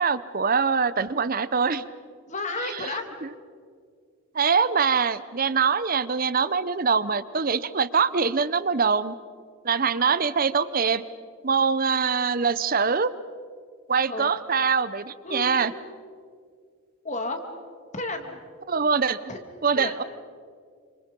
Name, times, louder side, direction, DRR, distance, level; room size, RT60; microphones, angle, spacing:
voice 1, 0.0-1.8 4.3-9.1 9.6-11.0 11.4-13.1 13.9-15.7 18.7-19.2 19.6-20.0, right 5 dB, 40° right, 15 dB, 0.7 m, -23 dB
voice 2, 2.3-3.1 14.1-14.3 15.2-15.6 17.0-17.4 17.9-18.4 19.3-19.4 19.7-20.0, left 2 dB, 30° left, 5 dB, 2.5 m, -32 dB
29.0 x 26.5 x 5.4 m, 2.1 s
head